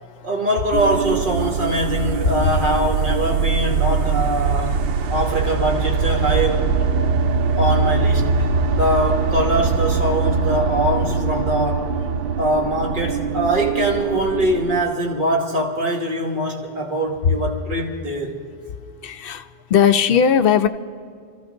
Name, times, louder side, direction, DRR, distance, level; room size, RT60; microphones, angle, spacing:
voice 1, 0.2-6.7 7.6-12.0 12.4-18.4, right 1 dB, 45° right, 1.8 m, -22 dB
sound 1, 0.7-14.8, right 5 dB, 65° right, 0.7 m, -22 dB
voice 2, 19.0-20.7, left 8 dB, 60° left, 0.7 m, -18 dB
26.5 x 15.0 x 2.6 m
omnidirectional pair, 1.2 m